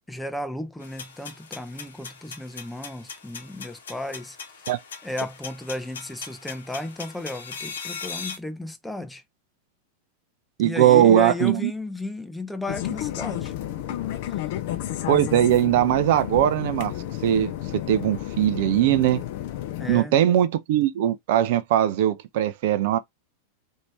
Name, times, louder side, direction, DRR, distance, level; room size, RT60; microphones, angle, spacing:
voice 1, 0.1-4.4 5.0-9.2 10.6-13.5 14.3-14.4 19.8-20.2, left 1 dB, 5° left, 0.5 m, -34 dB
sound 1, 0.8-8.4, left 5 dB, 65° left, 0.9 m, -39 dB
voice 2, 10.6-11.7 15.1-16.9 17.2-19.2 19.9-23.0, right 11 dB, 50° right, 0.5 m, -20 dB
sound 2, 12.7-20.0, left 12 dB, 50° left, 0.6 m, -31 dB
3.1 x 2.7 x 4.4 m
figure-of-eight pair, 90°, 0 cm